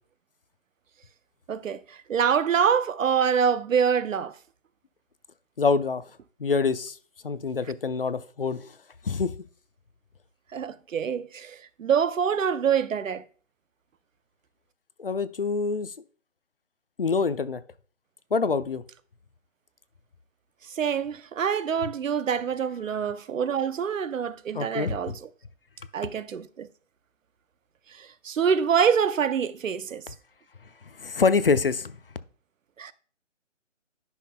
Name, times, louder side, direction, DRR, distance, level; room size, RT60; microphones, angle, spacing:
voice 1, 1.5-4.3 10.5-13.2 20.7-25.2 25.9-26.7 28.0-30.0 32.8-32.9, right 7 dB, 90° right, 0.7 m, -25 dB
voice 2, 5.6-6.0 6.4-7.0 7.2-8.7 9.0-9.3 15.0-15.9 17.0-17.6 18.3-18.8 24.5-24.9 31.0-32.0, left 4 dB, 50° left, 0.4 m, -25 dB
11.0 x 5.9 x 2.2 m
hypercardioid pair, 175°, 38 cm